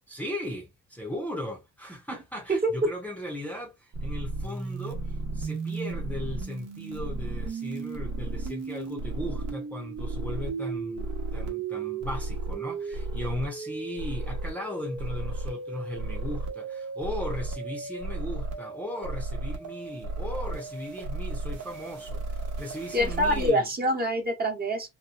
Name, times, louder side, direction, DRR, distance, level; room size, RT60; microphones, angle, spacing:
voice 1, 0.1-23.7, left 1 dB, 5° left, 0.9 m, -37 dB
sound 1, 3.9-23.5, right 3 dB, 60° right, 1.1 m, -34 dB
voice 2, 22.9-24.9, equal, 30° right, 1.1 m, -25 dB
3.0 x 2.2 x 2.3 m
cardioid pair, 90°, 30 cm